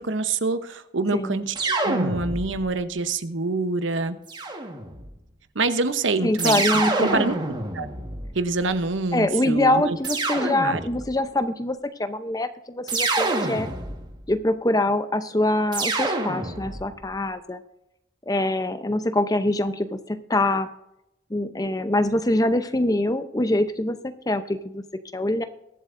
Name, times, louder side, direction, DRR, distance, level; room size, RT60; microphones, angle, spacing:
voice 1, 0.0-4.2 5.5-6.6 7.0-7.9 8.3-10.0 10.3-10.8, right 3 dB, 85° right, 10 dB, 0.9 m, -26 dB
sound 1, 1.5-2.8 4.3-5.1 6.4-8.7 10.0-11.2 12.9-14.2 15.7-16.9, right 2 dB, 25° right, 1.5 m, -27 dB
voice 2, 6.2-7.3 9.1-13.7 14.3-17.6 18.3-20.7 21.3-24.8 25.1-25.4, left 1 dB, 20° left, 10 dB, 0.7 m, -24 dB
22.5 x 7.9 x 2.6 m, 0.87 s
head